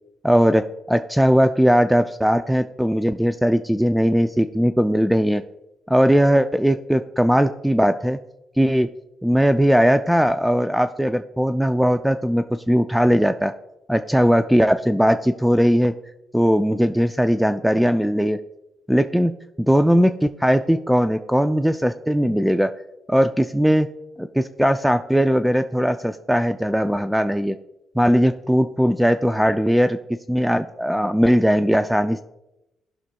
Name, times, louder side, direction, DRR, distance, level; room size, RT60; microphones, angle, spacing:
voice 1, 0.2-5.4 5.9-8.2 8.6-8.9 9.2-13.5 13.9-15.9 16.3-18.4 18.9-19.3 19.7-22.7 23.1-23.9 24.2-27.6 28.0-30.0 30.3-32.2, equal, 5° right, 9 dB, 0.3 m, -19 dB
17.5 x 6.0 x 2.3 m, 0.94 s
cardioid pair, 90°, 0 cm